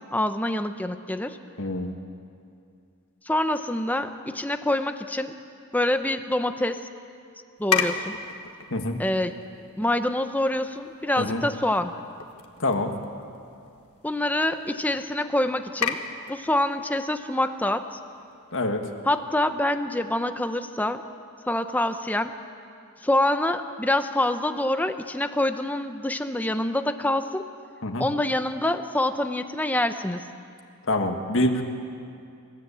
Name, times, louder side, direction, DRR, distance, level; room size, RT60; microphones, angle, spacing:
voice 1, 0.0-1.4 3.2-5.3 5.7-6.8 7.6-8.2 9.0-9.4 9.8-11.9 14.0-16.0 16.3-18.0 19.0-21.0 21.5-22.3 23.0-27.5 28.0-30.2, left 1 dB, 5° left, 8 dB, 0.8 m, -26 dB
voice 2, 1.6-1.9 8.7-9.0 11.2-11.4 12.6-12.9 18.5-18.8 27.8-28.1 30.9-31.6, left 1 dB, 60° left, 3 dB, 1.9 m, -25 dB
sound 1, 7.6-19.6, left 7 dB, 75° left, 1.4 m, -36 dB
27.0 x 14.0 x 8.5 m, 2.5 s
head